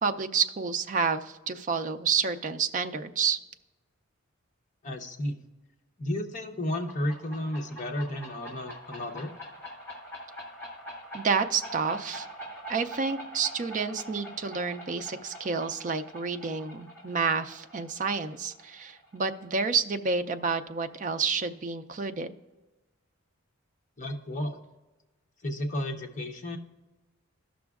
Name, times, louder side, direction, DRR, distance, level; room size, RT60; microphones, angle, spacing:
voice 1, 0.0-3.4 11.1-12.3 12.7-22.3, right 5 dB, 35° right, 7 dB, 0.4 m, -29 dB
voice 2, 4.8-5.3 6.0-9.3 24.0-24.6 25.4-26.6, left 1 dB, 35° left, 2 dB, 0.8 m, -32 dB
sound 1, 6.7-20.1, equal, 10° left, 1.5 m, -45 dB
14.5 x 6.1 x 2.4 m, 1.1 s
head